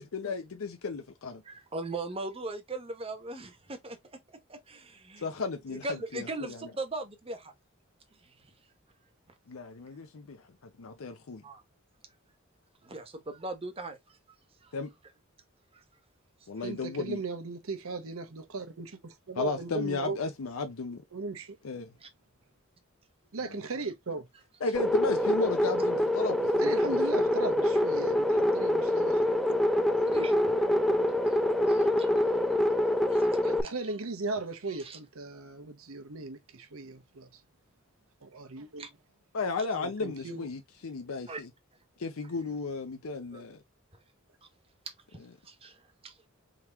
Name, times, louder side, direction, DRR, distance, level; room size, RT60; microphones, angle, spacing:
voice 1, 0.0-1.4 5.2-6.7 9.5-10.4 10.8-11.4 14.7-14.9 16.5-17.2 19.4-21.0 21.6-21.9 24.6-27.0 39.3-41.5 42.0-43.6, left 4 dB, 90° left, 0.6 m, -34 dB
voice 2, 1.4-4.0 4.5-5.3 5.7-7.5 8.1-8.3 11.4-11.6 12.8-14.2 14.6-14.7 15.7-15.8 22.0-22.1 30.1-30.6 31.2-31.4 31.7-32.2 33.1-33.7 34.8-35.0 38.8-38.9 41.3-41.4 43.3-43.5 45.4-46.1, right 2 dB, 30° right, 1.0 m, -39 dB
voice 3, 16.6-20.2 21.1-21.6 23.3-24.3 26.6-29.6 29.9-30.1 33.4-37.4 38.2-38.9 39.7-40.5, right 3 dB, 85° right, 0.9 m, -38 dB
sound 1, 24.7-33.6, left 1 dB, ahead, 0.4 m, -25 dB
3.9 x 2.9 x 3.4 m
head